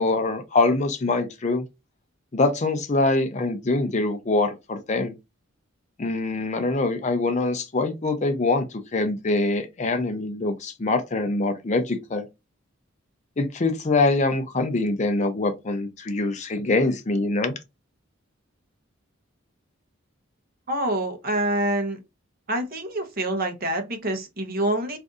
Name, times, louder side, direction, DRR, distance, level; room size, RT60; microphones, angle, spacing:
voice 1, 0.0-1.7 2.3-5.1 6.0-12.2 13.4-17.5, left 2 dB, 35° left, 0.5 m, -24 dB
voice 2, 20.7-22.0 22.5-25.0, right 1 dB, 45° right, 0.8 m, -26 dB
2.6 x 2.6 x 3.5 m
head